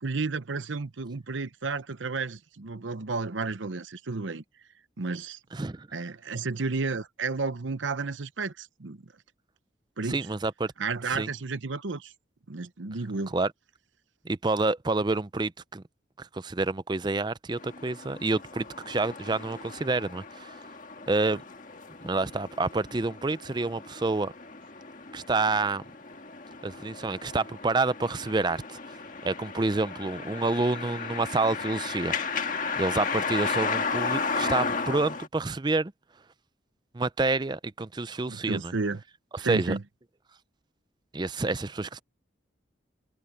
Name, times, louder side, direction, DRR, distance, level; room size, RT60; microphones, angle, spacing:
voice 1, 0.0-4.4 5.0-5.4 5.9-9.0 10.0-10.3 10.8-12.1 12.5-13.3 38.3-39.0 39.4-39.8, right 4 dB, 90° right, 0.9 m, -32 dB
voice 2, 5.5-5.9 10.1-10.7 11.1-11.3 13.3-13.5 14.2-15.8 16.2-20.6 21.1-21.4 22.0-24.3 25.1-25.8 26.6-29.0 29.2-32.5 32.8-35.9 36.9-38.7 39.3-39.8 41.1-42.0, right 3 dB, 25° right, 0.5 m, -28 dB
sound 1, 17.6-35.3, left 4 dB, 45° left, 1.7 m, -35 dB
head